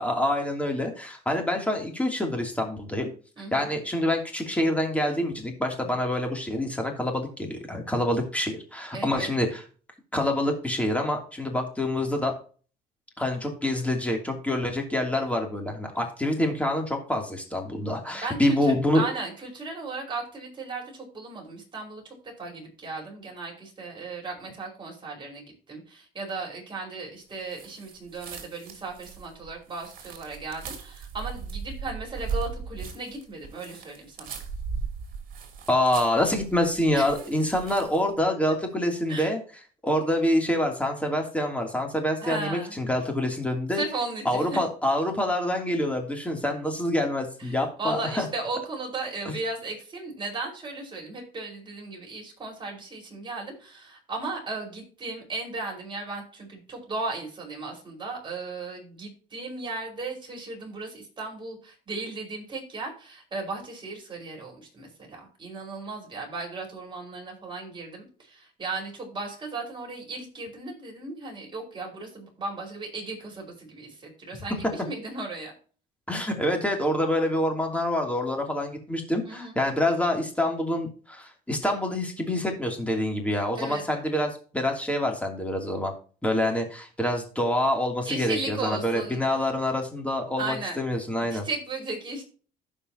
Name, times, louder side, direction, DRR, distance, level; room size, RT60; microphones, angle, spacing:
voice 1, 0.0-3.1 3.5-9.6 10.1-12.3 13.2-19.0 35.7-39.4 39.8-43.8 44.2-48.3 49.2-49.4 76.1-85.9 86.2-91.5, left 1 dB, 10° left, 2 dB, 2.8 m, -26 dB
voice 2, 3.4-3.7 8.9-9.3 18.1-34.3 36.9-37.2 38.5-38.6 39.1-39.3 42.2-42.8 43.7-44.6 47.4-75.5 79.2-79.6 83.6-83.8 88.0-89.2 90.4-90.8 91.3-92.2, right 3 dB, 30° right, -1 dB, 5.1 m, -36 dB
sound 1, 27.4-38.1, right 5 dB, 60° right, 3.1 m, -38 dB
16.0 x 5.6 x 2.9 m, 0.39 s
cardioid pair, 110°, 17 cm